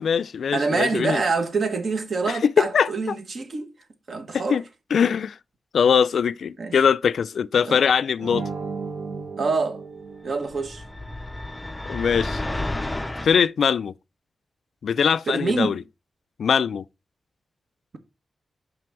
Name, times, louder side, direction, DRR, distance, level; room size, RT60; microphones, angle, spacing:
voice 1, 0.0-1.2 2.3-3.2 4.3-4.6 4.9-5.4 5.7-8.4 11.9-12.4 13.2-13.9 14.8-15.8 16.4-16.8, left 7 dB, 70° left, 0.3 m, -21 dB
voice 2, 0.5-3.7 4.1-4.6 6.6-6.7 7.7-7.8 9.4-9.8 10.2-10.8 15.3-15.8, right 4 dB, 45° right, 1.2 m, -26 dB
sound 1, 8.2-10.9, right 4 dB, 70° right, 1.1 m, -34 dB
sound 2, 10.5-13.4, left 1 dB, 10° left, 0.5 m, -31 dB
5.9 x 5.4 x 4.5 m
wide cardioid pair, 175°, 0 cm